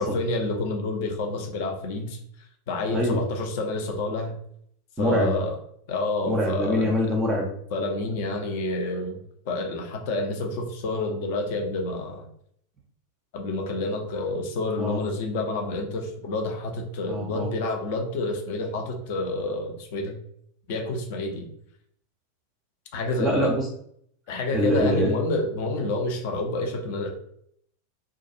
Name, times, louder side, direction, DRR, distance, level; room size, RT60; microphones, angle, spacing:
voice 1, 0.0-2.2 2.7-4.3 5.0-5.6 5.9-6.9 7.7-9.2 9.4-12.3 13.3-20.2 20.7-21.5 22.9-23.5 24.3-27.1, left 2 dB, 50° left, 3 dB, 0.6 m, -28 dB
voice 2, 2.9-3.2 5.0-5.3 6.3-7.5 14.8-15.0 17.1-17.5 23.2-23.7 24.5-25.1, equal, 20° right, -1 dB, 0.5 m, -24 dB
2.3 x 2.3 x 2.7 m, 0.67 s
figure-of-eight pair, 90°, 0 cm